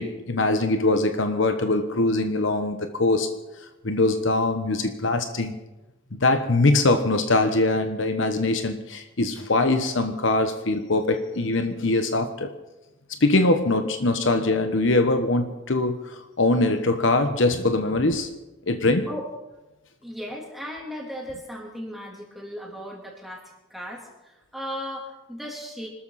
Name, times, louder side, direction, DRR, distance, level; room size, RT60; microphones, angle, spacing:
voice 1, 0.0-3.4 3.8-5.6 6.1-12.5 13.2-18.3 18.7-19.1, left 2 dB, 65° left, 1.1 m, -22 dB
voice 2, 20.0-25.9, equal, ahead, 3.4 m, -36 dB
25.5 x 13.0 x 4.2 m
head